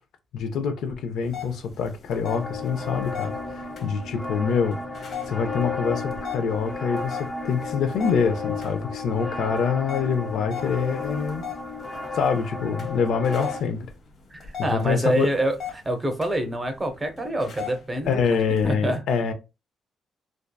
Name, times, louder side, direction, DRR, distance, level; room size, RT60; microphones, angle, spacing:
voice 1, 0.3-11.5 12.1-13.9 14.7-15.3 18.1-19.3, left 6 dB, 75° left, 0.4 m, -25 dB
sound 1, 1.2-18.7, left 8 dB, 60° left, 0.9 m, -41 dB
sound 2, 2.2-13.6, left 3 dB, 25° left, 0.5 m, -33 dB
voice 2, 14.3-15.6 15.8-18.4 18.6-19.0, right 1 dB, 20° right, 0.6 m, -26 dB
2.6 x 2.2 x 2.2 m
cardioid pair, 90°, 0 cm